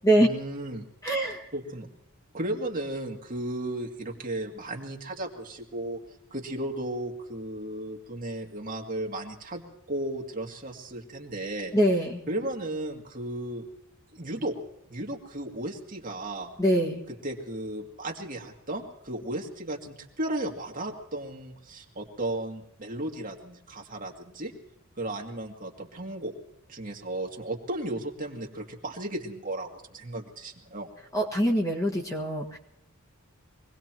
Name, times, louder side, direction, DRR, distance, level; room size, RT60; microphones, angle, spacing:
voice 1, 0.2-0.9 1.5-1.9 2.3-6.0 6.3-9.6 9.9-11.7 12.3-13.7 14.1-14.6 14.9-16.5 17.2-24.5 25.0-26.3 26.7-30.9, right 1 dB, 40° right, 1 dB, 2.0 m, -35 dB
voice 2, 1.0-1.5 11.7-12.2 16.6-17.0 31.1-32.6, right 1 dB, 15° left, 0 dB, 1.7 m, -24 dB
24.0 x 18.5 x 3.0 m, 0.85 s
head